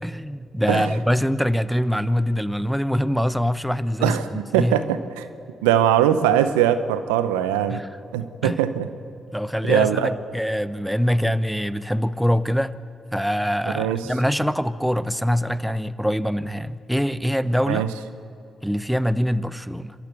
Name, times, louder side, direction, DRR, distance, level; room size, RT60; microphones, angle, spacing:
voice 1, 0.0-4.8 7.7-7.9 8.4-8.6 9.3-12.8 13.1-17.8 18.6-19.9, equal, ahead, 15 dB, 0.9 m, -24 dB
voice 2, 4.0-5.3 5.6-7.8 8.1-8.9 9.7-10.1 13.7-14.0 17.7-17.9, right 10 dB, 85° right, 12 dB, 0.7 m, -21 dB
28.0 x 13.5 x 8.3 m, 2.8 s
hypercardioid pair, 40°, 0 cm